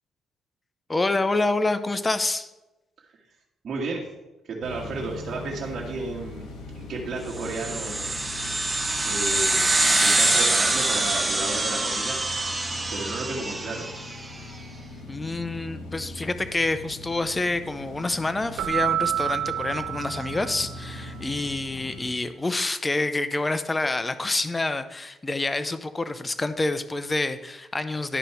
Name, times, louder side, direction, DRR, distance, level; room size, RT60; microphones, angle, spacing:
voice 1, 0.9-2.5 15.1-28.2, left 2 dB, 20° left, 11 dB, 0.6 m, -27 dB
voice 2, 3.6-4.1 4.4-6.5 6.7-8.1 9.0-12.2 12.9-13.9, right 3 dB, 50° right, -3 dB, 1.6 m, -33 dB
sound 1, 4.6-22.1, left 2 dB, 90° left, 1.9 m, -40 dB
sound 2, 7.4-14.2, right 2 dB, 15° right, 1.6 m, -24 dB
Keyboard (musical), 18.6-21.0, right 11 dB, 70° right, 0.3 m, -28 dB
11.0 x 5.3 x 4.4 m, 1.0 s
cardioid pair, 100°, 0 cm